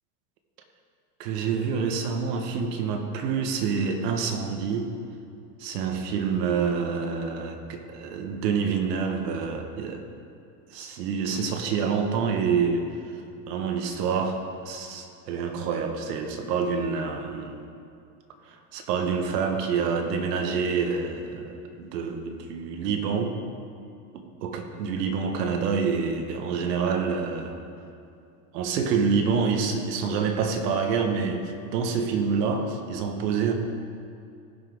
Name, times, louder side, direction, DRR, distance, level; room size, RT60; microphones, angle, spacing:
voice 1, 1.2-4.9 5.6-10.0 10.7-12.9 13.5-17.6 18.5-23.4 24.4-27.6 28.5-33.5, right 5 dB, 70° right, 5 dB, 1.5 m, -27 dB
18.0 x 6.1 x 3.7 m, 2.5 s
supercardioid pair, 145°, 50 cm